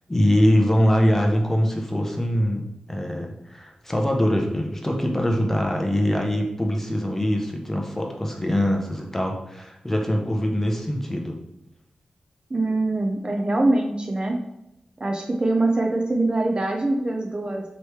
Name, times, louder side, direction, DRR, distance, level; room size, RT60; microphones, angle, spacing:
voice 1, 0.1-11.4, equal, 15° left, 1 dB, 0.7 m, -23 dB
voice 2, 12.5-14.4 15.0-17.6, right 2 dB, 35° right, 2 dB, 0.5 m, -23 dB
3.1 x 3.0 x 3.2 m, 0.87 s
cardioid pair, 55°, 3 cm